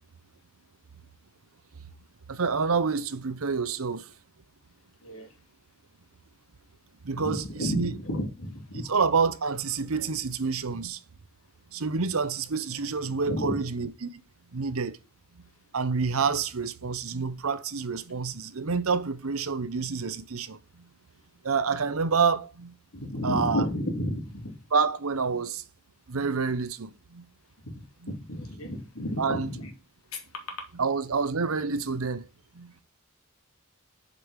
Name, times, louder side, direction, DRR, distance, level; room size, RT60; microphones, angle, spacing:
voice 1, 2.3-4.1 7.0-8.0 8.7-11.0 11.7-14.1 14.5-15.0 15.3-15.4 15.7-20.9 21.4-22.8 23.2-23.6 24.7-25.6 26.1-27.3 28.0-28.1 29.2-29.5 30.7-32.3 32.5-32.7, right 5 dB, 75° right, 0.8 m, -28 dB
voice 2, 7.1-8.9 13.2-13.6 22.9-24.5 27.6-27.7 28.0-29.7 30.1-30.7, left 1 dB, 75° left, 2.5 m, -32 dB
6.8 x 5.3 x 6.4 m
head